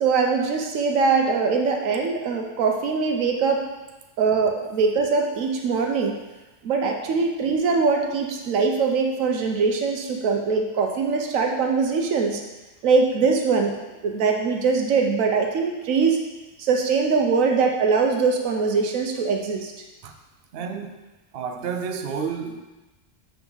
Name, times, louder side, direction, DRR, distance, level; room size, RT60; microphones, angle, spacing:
voice 1, 0.0-3.6 4.2-6.1 6.6-12.4 12.8-13.8 14.0-16.2 16.6-19.7, right 4 dB, 90° right, 2 dB, 1.1 m, -22 dB
voice 2, 20.5-21.1 21.3-22.6, right 6 dB, 55° right, 5 dB, 0.8 m, -30 dB
7.0 x 5.9 x 3.9 m, 1.1 s
omnidirectional pair, 1.3 m